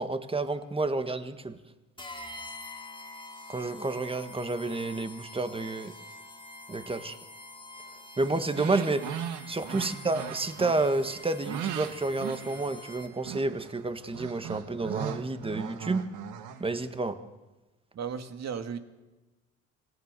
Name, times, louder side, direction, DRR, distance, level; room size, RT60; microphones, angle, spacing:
voice 1, 0.0-1.6 3.5-5.9 6.7-7.2 8.2-9.1 9.5-16.1 16.6-17.2, right 2 dB, 20° right, 9 dB, 1.8 m, -30 dB
sound 1, 2.0-13.3, left 2 dB, 15° left, 2.2 m, -46 dB
sound 2, 8.6-13.0 13.2-16.9, right 9 dB, 85° right, 1.7 m, -39 dB
voice 2, 17.9-18.8, right 6 dB, 60° right, 7 dB, 2.2 m, -35 dB
27.0 x 19.0 x 6.9 m, 1.1 s
cardioid pair, 90°, 30 cm